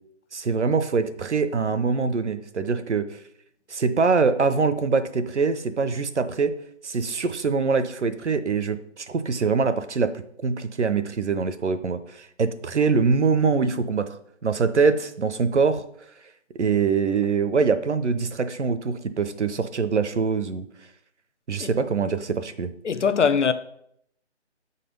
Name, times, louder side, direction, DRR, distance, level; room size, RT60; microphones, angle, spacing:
voice 1, 0.3-3.2 3.7-6.5 6.8-10.1 10.4-14.2 14.4-15.8 16.5-20.6 21.5-22.7, right 5 dB, 80° right, 0.9 m, -23 dB
voice 2, 22.8-23.5, left 6 dB, 85° left, 0.7 m, -21 dB
7.4 x 4.2 x 5.2 m
figure-of-eight pair, 170°, 35 cm